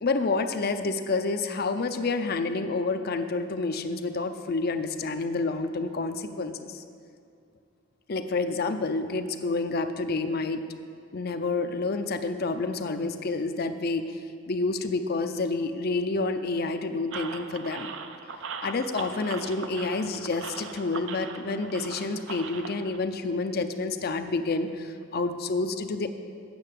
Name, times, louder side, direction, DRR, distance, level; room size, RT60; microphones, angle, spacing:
voice 1, 0.0-6.8 8.1-10.6 11.1-14.2 14.5-17.9 18.6-26.1, left 3 dB, 50° left, 8 dB, 0.6 m, -29 dB
sound 1, 17.1-23.0, right 5 dB, 70° right, 0.6 m, -40 dB
8.7 x 6.7 x 7.3 m, 2.4 s
head